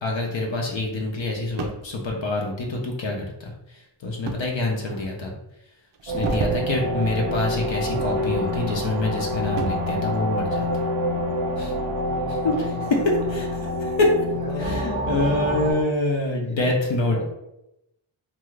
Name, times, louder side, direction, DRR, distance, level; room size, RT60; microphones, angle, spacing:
voice 1, 0.0-5.3 6.0-10.9 11.6-11.7 12.4-12.5 12.9-14.1 14.6-17.2, left 2 dB, 65° left, 0 dB, 0.7 m, -26 dB
sound 1, 1.6-1.9 4.3-4.5 5.0-5.1 5.9-6.7 7.0-7.2 7.7-8.7 9.0-9.9 11.5-12.6 13.1-13.2 13.9-14.3, right 4 dB, 60° right, 0.5 m, -32 dB
sound 2, 6.1-15.7, equal, 90° right, 0.9 m, -27 dB
voice 2, 12.1-13.0 13.3-13.5 14.3-15.8 16.4-17.2, left 1 dB, 15° left, -2 dB, 0.8 m, -38 dB
2.6 x 2.4 x 3.2 m, 0.87 s
wide cardioid pair, 65°, 49 cm